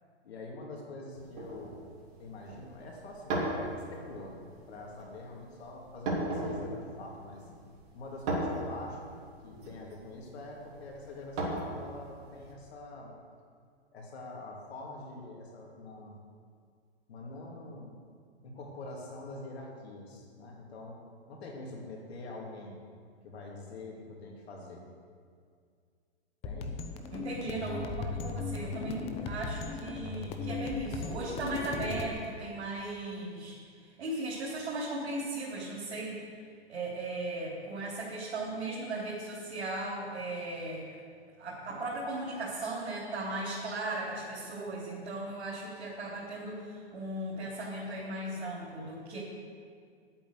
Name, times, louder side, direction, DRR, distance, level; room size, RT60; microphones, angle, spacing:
voice 1, 0.2-1.8 2.2-4.4 4.7-7.5 7.9-13.1 13.9-16.2 17.1-18.0 18.4-21.0 21.3-22.8 23.2-24.8 26.4-26.7 27.7-27.9, left 2 dB, 70° left, -1 dB, 3.0 m, -45 dB
sound 1, 1.2-12.5, right 1 dB, 50° right, 3.3 m, -38 dB
sound 2, 26.4-32.1, left 4 dB, 20° left, 0.7 m, -37 dB
voice 2, 27.1-33.5 34.0-36.2 36.7-40.9 41.4-49.2, right 2 dB, 80° right, -6 dB, 3.4 m, -37 dB
10.5 x 8.7 x 6.6 m, 2.2 s
hypercardioid pair, 145°, 33 cm